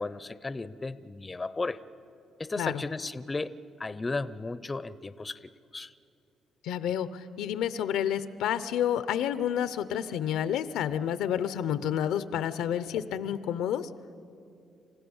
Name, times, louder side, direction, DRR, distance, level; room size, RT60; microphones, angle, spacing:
voice 1, 0.0-1.8 2.4-3.5 3.8-5.4 5.7-5.9, left 3 dB, 25° left, 16 dB, 0.6 m, -34 dB
voice 2, 6.6-13.9, left 9 dB, 90° left, 14 dB, 0.6 m, -29 dB
28.0 x 15.5 x 7.1 m, 2.6 s
cardioid pair, 90°, 0 cm